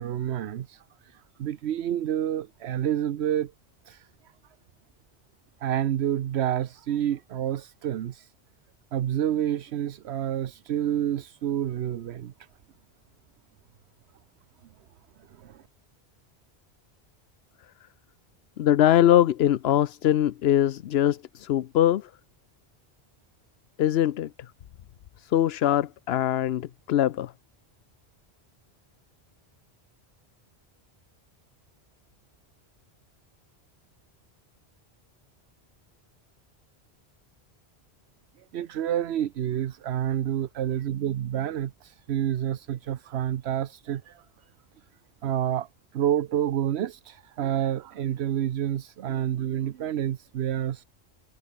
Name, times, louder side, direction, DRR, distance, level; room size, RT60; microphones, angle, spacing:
voice 1, 0.0-3.5 3.9-4.1 5.6-8.3 8.9-12.3 15.3-15.6 38.5-44.2 45.2-45.7 45.9-50.8, right 10 dB, 80° right, 1.0 m, -28 dB
voice 2, 18.6-22.1 23.8-24.3 25.2-27.3, left 11 dB, 75° left, 0.9 m, -22 dB
omnidirectional pair, 1.1 m